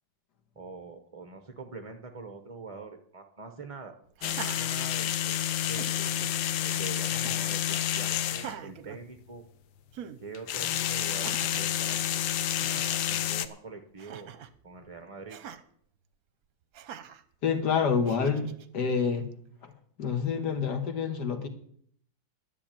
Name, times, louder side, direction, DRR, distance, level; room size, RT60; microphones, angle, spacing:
voice 1, 0.6-3.9 4.2-5.9 6.6-9.4 10.2-12.3 12.6-14.3 14.6-15.6, right 4 dB, 30° right, 6 dB, 0.6 m, -44 dB
sound 1, 4.2-8.5 10.3-13.5, left 11 dB, 90° left, 1.5 m, -29 dB
Laughter, 4.2-5.3 5.6-6.3 7.1-7.6 8.3-9.5 9.9-10.2 11.1-11.7 12.2-12.3 12.5-12.8 14.0-14.6 15.3-15.6 16.7-17.2 18.1-18.7, right 9 dB, 60° right, 1.1 m, -44 dB
voice 2, 17.4-19.3 19.6-19.7 20.0-21.5, left 6 dB, 65° left, 7 dB, 2.0 m, -28 dB
10.5 x 7.5 x 8.8 m, 0.62 s
omnidirectional pair, 2.0 m